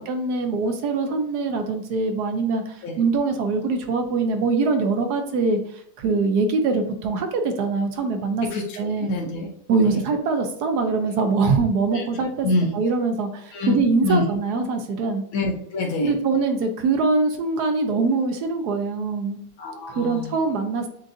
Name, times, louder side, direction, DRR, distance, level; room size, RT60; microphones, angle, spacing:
voice 1, 0.0-5.6 6.0-8.5 8.8-9.2 9.7-12.5 12.7-15.2 16.0-19.4 19.9-20.8, right 4 dB, 70° right, 5 dB, 1.2 m, -23 dB
voice 2, 9.0-9.5 9.8-10.0 11.9-12.0 12.4-12.7 13.5-14.2 15.3-16.1 19.6-20.3, left 2 dB, 60° left, -2 dB, 1.1 m, -26 dB
7.6 x 2.5 x 2.6 m, 0.66 s
omnidirectional pair, 1.8 m